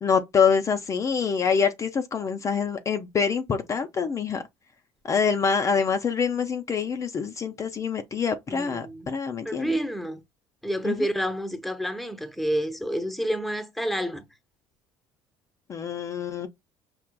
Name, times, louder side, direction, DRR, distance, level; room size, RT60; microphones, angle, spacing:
voice 1, 0.0-4.4 5.1-9.7 10.8-11.1 15.7-16.5, left 6 dB, 35° left, 0.5 m, -25 dB
voice 2, 8.5-9.1 9.4-10.2 10.6-14.2, equal, ahead, 0.8 m, -29 dB
5.9 x 2.4 x 2.2 m
supercardioid pair, 100°, 10 cm